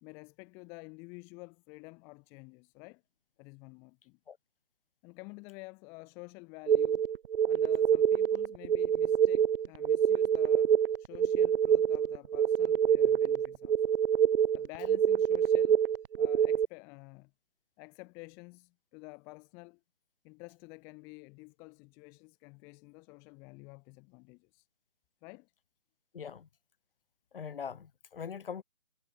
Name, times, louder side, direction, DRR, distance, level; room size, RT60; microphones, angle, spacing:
voice 1, 0.0-3.0 3.4-4.2 5.0-7.1 7.5-14.0 14.5-15.8 16.2-17.3 17.8-19.8 20.2-24.7 25.2-25.5, left 30 dB, 10° left, 0.5 m, -50 dB
sound 1, 6.7-16.7, right 8 dB, 60° right, 0.6 m, -26 dB
voice 2, 26.1-26.5 27.3-28.6, left 7 dB, 60° left, 1.5 m, -41 dB
figure-of-eight pair, 145°, 31 cm